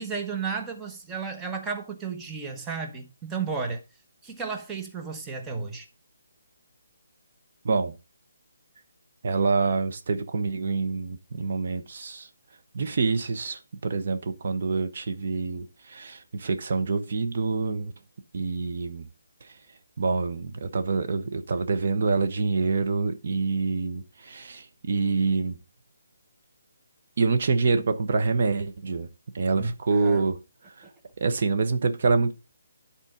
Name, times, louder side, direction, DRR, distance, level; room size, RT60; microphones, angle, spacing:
voice 1, 0.0-3.8 4.2-5.9 29.6-30.2, right 5 dB, 10° right, 1.1 m, -33 dB
voice 2, 7.6-8.0 9.2-12.3 12.7-17.9 18.3-19.1 19.4-19.5 20.0-25.6 27.2-29.1 29.3-30.4 30.6-30.9 31.2-32.3, right 4 dB, 55° right, 1.1 m, -26 dB
9.9 x 4.4 x 5.0 m
figure-of-eight pair, 155°, 0 cm